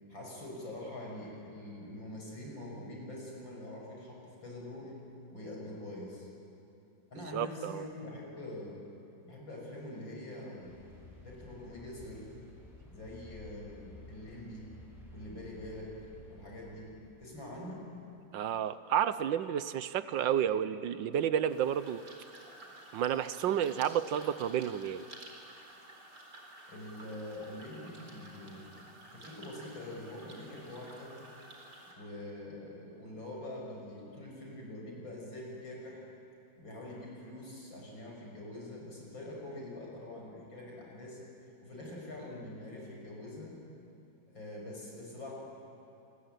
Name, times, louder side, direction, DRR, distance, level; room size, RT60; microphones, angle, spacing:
voice 1, 0.1-4.9 5.3-6.3 7.1-8.8 9.2-10.8 11.2-12.3 12.9-14.7 15.1-15.9 16.3-16.9 17.2-17.9 26.7-28.7 29.1-31.2 32.0-36.1 36.6-43.6 44.3-45.3, left 1 dB, 75° left, -1 dB, 7.3 m, -44 dB
voice 2, 7.3-7.8 18.3-22.0 22.9-25.0, right 9 dB, 75° right, 13 dB, 1.5 m, -31 dB
sound 1, 10.6-17.8, left 2 dB, ahead, 7.7 m, -54 dB
sound 2, 21.5-31.9, right 1 dB, 55° right, 4.6 m, -52 dB
28.0 x 21.5 x 9.2 m, 3.0 s
omnidirectional pair, 2.1 m